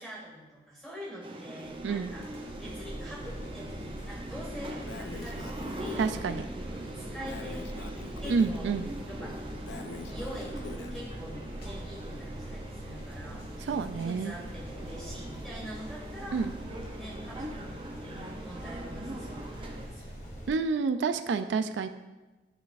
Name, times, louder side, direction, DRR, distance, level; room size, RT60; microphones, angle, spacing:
voice 1, 0.0-2.3 2.6-6.4 6.9-7.9 8.2-8.7 9.1-9.8 10.1-16.5 17.0-20.1, equal, 5° left, -5 dB, 1.9 m, -45 dB
Boarding Underground Train and short stop, 1.2-19.9, right 1 dB, 30° right, 0.5 m, -42 dB
sound 1, 1.6-20.5, equal, 60° left, 1.5 m, -42 dB
Breathing, 4.9-6.2 7.3-8.6 9.7-11.0, left 4 dB, 75° left, 0.4 m, -44 dB
voice 2, 6.0-6.4 8.3-8.9 13.6-14.4 16.3-16.5 20.5-21.9, right 5 dB, 90° right, 10 dB, 0.3 m, -29 dB
11.0 x 4.0 x 2.4 m, 1.1 s
head